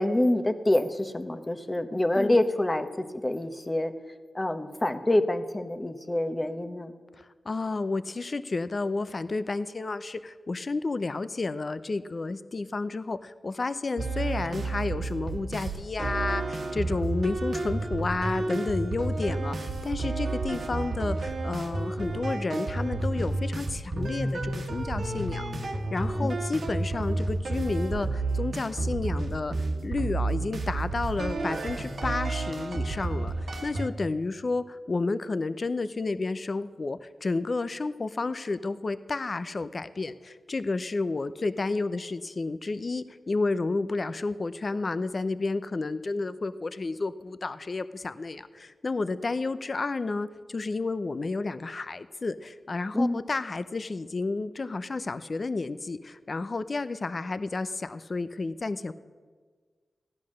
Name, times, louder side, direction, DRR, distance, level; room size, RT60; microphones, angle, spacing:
voice 1, 0.0-3.9 4.3-6.9 26.2-26.3 52.9-53.2, left 1 dB, 20° left, 8 dB, 1.0 m, -26 dB
voice 2, 7.2-58.9, left 3 dB, 45° left, 13 dB, 0.6 m, -31 dB
sound 1, 14.0-33.9, right 2 dB, 70° right, 1.4 m, -31 dB
15.0 x 10.5 x 6.4 m, 1.5 s
cardioid pair, 75°, 0 cm